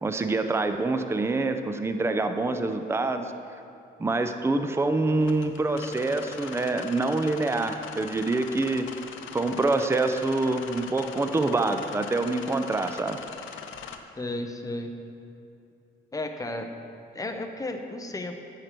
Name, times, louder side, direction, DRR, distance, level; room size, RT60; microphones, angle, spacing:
voice 1, 0.0-3.3 4.0-8.9 9.3-13.2, right 2 dB, 15° right, 7 dB, 0.5 m, -26 dB
sound 1, 5.2-14.0, left 7 dB, 75° left, 0.7 m, -41 dB
voice 2, 14.2-15.0 16.1-16.7 17.1-18.4, left 2 dB, 15° left, 5 dB, 0.8 m, -33 dB
10.5 x 6.6 x 4.6 m, 2.6 s
cardioid pair, 90°, 20 cm